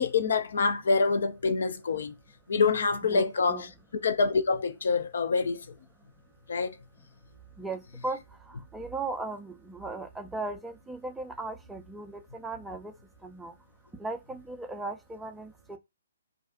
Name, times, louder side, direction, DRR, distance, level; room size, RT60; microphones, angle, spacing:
voice 1, 0.0-2.1 2.5-3.7 4.0-5.7 6.5-6.8, left 4 dB, 60° left, 0.4 m, -26 dB
voice 2, 3.1-3.7 7.6-8.2 8.5-12.9 13.2-13.5 14.0-15.8, right 3 dB, 5° right, 0.4 m, -37 dB
2.4 x 2.3 x 2.4 m
figure-of-eight pair, 125°, 0 cm